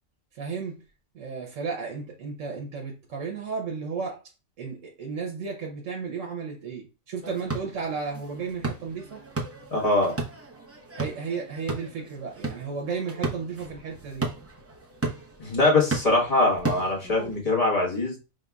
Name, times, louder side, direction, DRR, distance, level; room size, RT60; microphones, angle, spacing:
voice 1, 0.3-0.8 1.1-4.2 4.6-9.2 10.9-14.3, right 5 dB, 90° right, 1.2 m, -33 dB
sound 1, 7.2-17.4, right 3 dB, 15° right, 0.7 m, -35 dB
voice 2, 9.7-10.1 15.4-18.1, left 2 dB, 30° left, 1.4 m, -22 dB
5.3 x 3.5 x 2.3 m
omnidirectional pair, 1.3 m